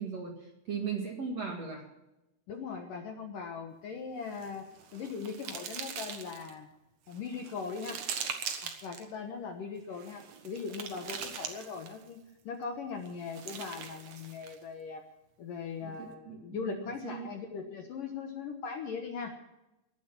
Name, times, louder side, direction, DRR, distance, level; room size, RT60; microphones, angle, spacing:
voice 1, 0.0-1.8 15.8-17.3, right 6 dB, 50° right, 1 dB, 2.3 m, -38 dB
voice 2, 2.5-4.7 4.9-6.7 7.1-8.0 8.6-15.0 15.4-19.4, left 5 dB, 65° left, 4 dB, 2.3 m, -40 dB
sound 1, 4.3-6.5 7.1-9.0 9.9-12.1 13.1-14.6, right 7 dB, 70° right, 1.6 m, -41 dB
18.5 x 11.5 x 5.9 m, 0.93 s
omnidirectional pair, 5.3 m